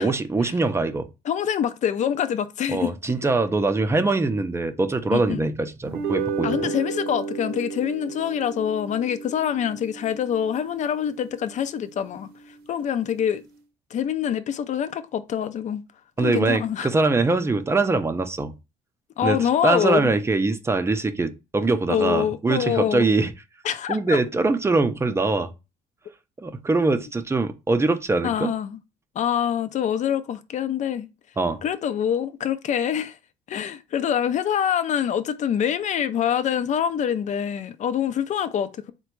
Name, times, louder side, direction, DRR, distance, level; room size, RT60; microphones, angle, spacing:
voice 1, 0.0-1.1 2.7-6.7 16.2-18.5 19.2-19.4 19.6-23.3 23.9-25.5 26.4-28.5 31.4-31.6, right 3 dB, 15° right, 0.5 m, -23 dB
voice 2, 1.3-2.9 5.1-5.4 6.4-12.3 12.7-13.4 13.9-15.8 16.2-16.9 19.2-20.1 21.9-23.1 23.6-24.2 28.2-28.8 29.2-31.1 31.6-33.2 33.5-38.9, left 9 dB, 45° left, 0.5 m, -25 dB
sound 1, 5.8-12.4, right 5 dB, 65° right, 0.7 m, -33 dB
3.9 x 2.2 x 4.5 m
cardioid pair, 110°, 17 cm